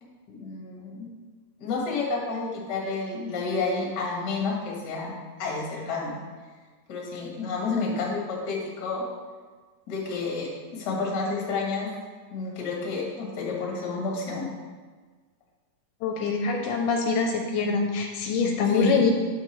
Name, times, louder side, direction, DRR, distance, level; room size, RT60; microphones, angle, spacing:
voice 1, 0.0-1.1 1.6-5.1 5.4-6.1 6.9-9.1 9.9-11.9 12.3-14.5 18.7-19.0, left 4 dB, 50° left, -2 dB, 1.2 m, -30 dB
voice 2, 16.0-19.1, left 5 dB, 80° left, 3 dB, 2.0 m, -24 dB
8.4 x 6.5 x 3.0 m, 1.4 s
omnidirectional pair, 4.0 m